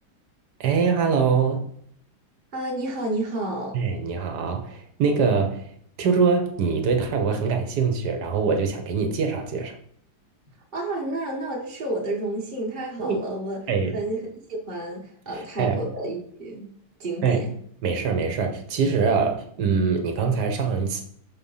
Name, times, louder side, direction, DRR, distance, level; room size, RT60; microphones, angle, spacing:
voice 1, 0.6-1.7 3.7-5.6 6.0-9.7 13.0-13.2 13.7-13.9 15.6-15.8 17.2-17.5 17.8-21.0, right 5 dB, 60° right, 5 dB, 1.5 m, -23 dB
voice 2, 2.5-3.7 10.7-13.6 13.9-14.2 14.5-16.7 17.0-17.5, right 2 dB, 30° right, -2 dB, 1.2 m, -30 dB
6.4 x 3.8 x 5.5 m, 0.66 s
omnidirectional pair, 2.2 m